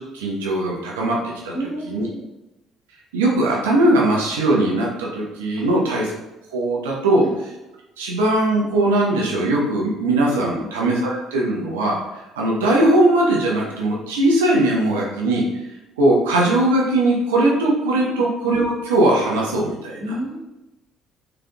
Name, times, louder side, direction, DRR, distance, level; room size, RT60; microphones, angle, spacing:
voice 1, 0.1-1.2 1.4-1.5 1.9-2.0 3.1-6.1 6.5-7.2 8.0-15.4 16.0-20.1, right 1 dB, 80° right, -3 dB, 0.8 m, -19 dB
voice 2, 1.5-2.3 5.6-5.9 7.2-7.3 10.5-10.7 18.0-18.2 20.0-20.4, right 1 dB, 20° left, -4 dB, 0.8 m, -31 dB
3.9 x 3.4 x 2.3 m, 1.0 s
hypercardioid pair, 55°, 0 cm